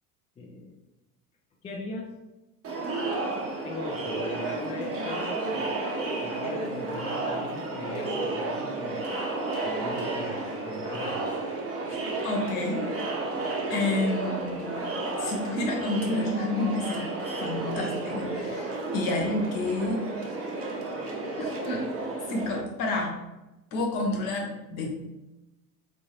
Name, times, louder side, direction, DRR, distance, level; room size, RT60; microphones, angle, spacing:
voice 1, 0.4-0.8 1.6-2.1 3.5-5.8 6.2-9.2 9.6-11.3, left 2 dB, 15° left, -2 dB, 0.4 m, -39 dB
Crowd, 2.6-22.6, right 2 dB, 30° right, 0.8 m, -32 dB
voice 2, 11.9-12.9 13.3-13.4 13.7-14.8 15.2-17.0 17.4-20.0 21.4-21.9 22.3-23.1 23.7-24.9, left 2 dB, 50° left, 0 dB, 1.1 m, -29 dB
3.7 x 2.6 x 2.9 m, 1.0 s
figure-of-eight pair, 70°, 44 cm